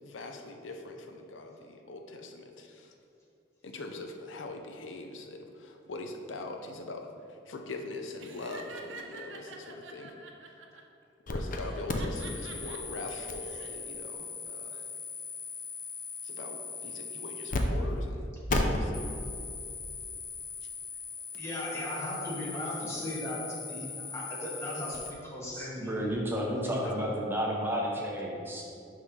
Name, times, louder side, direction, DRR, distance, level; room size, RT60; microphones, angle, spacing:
voice 1, 0.0-2.9 3.6-7.1 7.5-10.1 11.3-14.8 16.2-19.1, left 2 dB, 90° left, 4 dB, 0.6 m, -42 dB
Laughter, 8.2-10.8 11.6-12.8 13.3-13.7, right 4 dB, 75° right, 0.7 m, -46 dB
sound 1, 11.3-11.6 11.9-17.6 17.9-18.0 18.5-25.1, left 3 dB, 45° left, 0.6 m, -37 dB
voice 2, 21.3-23.4 23.7-23.9 24.1-26.0 26.6-26.9, left 1 dB, 15° left, -6 dB, 1.6 m, -37 dB
voice 3, 25.5-28.6, equal, 10° right, -2 dB, 0.7 m, -32 dB
11.0 x 3.8 x 3.2 m, 2.6 s
head